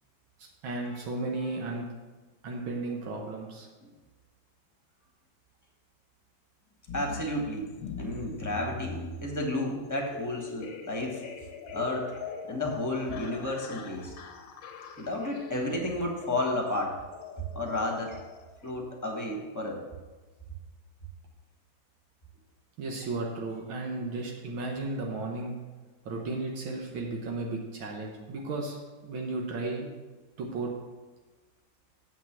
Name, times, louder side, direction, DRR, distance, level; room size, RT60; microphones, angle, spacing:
voice 1, 0.6-1.9 2.4-3.7 22.8-25.6 26.1-28.8 29.0-29.9 30.4-30.7, right 2 dB, 80° right, 0 dB, 1.9 m, -34 dB
sound 1, 6.9-18.7, left 4 dB, 80° left, 1.6 m, -42 dB
voice 2, 6.9-7.7 8.0-11.2 11.7-12.2 12.4-14.1 15.0-17.0 17.5-18.2 18.6-19.9, left 1 dB, 10° left, 0 dB, 1.2 m, -32 dB
7.6 x 5.9 x 7.3 m, 1.2 s
omnidirectional pair, 2.2 m